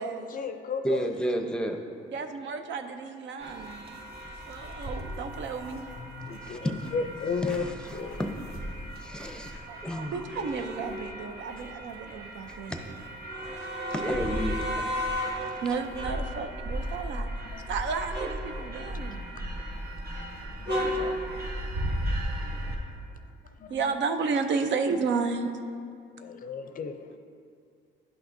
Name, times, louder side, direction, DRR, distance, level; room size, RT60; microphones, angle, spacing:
voice 1, 0.3-1.0 6.3-7.6 7.9-8.2 17.5-17.7 18.9-19.0 19.4-19.5 20.2-21.1 23.6-23.8 26.2-27.1, left 5 dB, 45° left, 8 dB, 0.5 m, -34 dB
voice 2, 0.8-1.8 6.4-6.8 7.4-8.4 9.0-10.3 12.7-12.8 13.4-13.6 13.9-14.6 15.2-15.5, equal, 5° left, 4 dB, 0.7 m, -32 dB
voice 3, 2.1-3.9 4.5-5.9 9.7-12.7 15.6-17.3 17.7-19.3 20.9-21.0 23.7-25.5, right 5 dB, 65° right, 7 dB, 0.6 m, -32 dB
sound 1, 3.4-22.8, equal, 50° right, 1.2 m, -35 dB
11.0 x 6.0 x 2.6 m, 2.3 s
cardioid pair, 90°, 20 cm